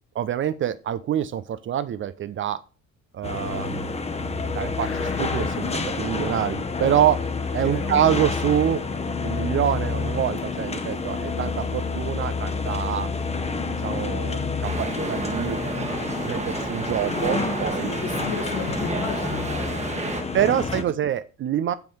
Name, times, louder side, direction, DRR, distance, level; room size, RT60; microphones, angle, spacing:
voice 1, 0.1-2.6 3.1-3.9 4.2-7.2 7.5-8.8 9.2-13.1 13.6-15.6 16.2-18.0 20.3-21.7, right 10 dB, 35° right, 15 dB, 0.5 m, -26 dB
sound 1, 3.2-20.8, left 4 dB, 15° left, 1.0 m, -28 dB
sound 2, 4.8-7.7 8.1-8.2, left 6 dB, 35° left, 1.4 m, -41 dB
voice 2, 7.6-7.9 10.9-11.0 17.7-20.9, left 6 dB, 65° left, 4 dB, 1.9 m, -36 dB
sound 3, 14.6-20.2, right 3 dB, 20° right, 1.3 m, -31 dB
7.1 x 5.8 x 5.3 m, 0.34 s
figure-of-eight pair, 50°, 37 cm